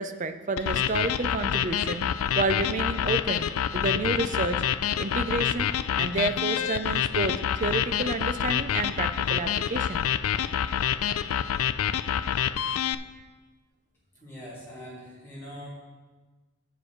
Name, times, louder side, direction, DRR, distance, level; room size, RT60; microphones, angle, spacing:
voice 1, 0.0-2.1 2.4-3.5 3.7-4.6 5.0-5.7 6.0-7.3 7.6-10.1, right 3 dB, 35° right, 10 dB, 0.4 m, -30 dB
sound 1, 0.6-12.9, left 9 dB, 80° left, 0.3 m, -27 dB
voice 2, 14.2-15.7, equal, 10° left, -8 dB, 3.0 m, -42 dB
8.1 x 7.7 x 5.0 m, 1.3 s
head